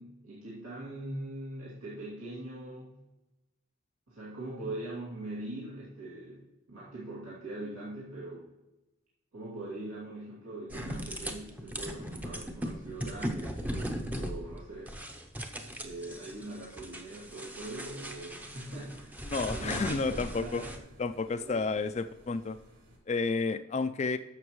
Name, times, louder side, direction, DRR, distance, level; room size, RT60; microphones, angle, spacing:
voice 1, 0.0-3.0 4.1-6.4 6.7-8.5 9.3-15.0 15.6-20.9 21.4-21.8, right 2 dB, 85° right, -8 dB, 2.5 m, -42 dB
PS Skiff Building, 10.7-20.8, equal, 5° right, 0.6 m, -38 dB
sound 1, 15.8-23.0, equal, 60° right, 3.0 m, -59 dB
voice 2, 19.3-20.6 21.0-22.6 23.1-24.2, left 4 dB, 30° left, 10 dB, 0.3 m, -31 dB
11.0 x 7.2 x 3.1 m, 1.0 s
head